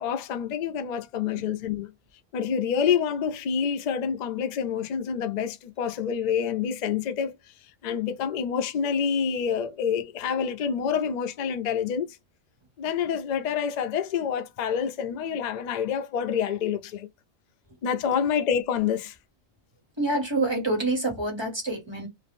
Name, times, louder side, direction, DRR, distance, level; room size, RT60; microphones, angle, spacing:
voice 1, 0.0-1.9 2.3-7.3 7.8-12.2 12.8-17.1 17.8-19.2, left 7 dB, 85° left, 0.3 m, -27 dB
voice 2, 20.0-22.1, right 2 dB, 20° right, 1.3 m, -27 dB
3.0 x 2.5 x 3.4 m
omnidirectional pair, 1.4 m